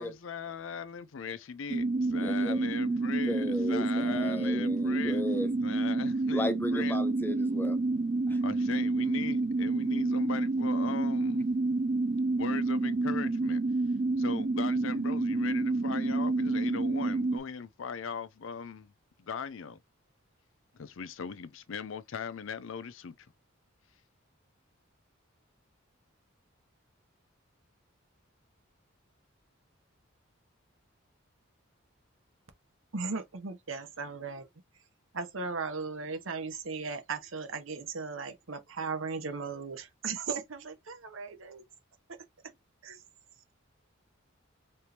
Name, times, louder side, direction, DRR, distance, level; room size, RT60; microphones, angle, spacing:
voice 1, 0.0-5.2 5.6-7.0 8.4-11.5 12.4-13.6 14.2-18.9 19.2-19.8 20.7-23.3, left 6 dB, 70° left, 0.5 m, -39 dB
sound 1, 1.7-17.4, right 2 dB, 35° right, 0.4 m, -29 dB
voice 2, 2.2-2.6 3.3-5.5 6.3-7.8, left 1 dB, 10° left, 0.6 m, -35 dB
voice 3, 32.9-34.5 35.1-41.6 42.8-43.0, right 4 dB, 75° right, 1.0 m, -37 dB
4.4 x 3.4 x 2.8 m
head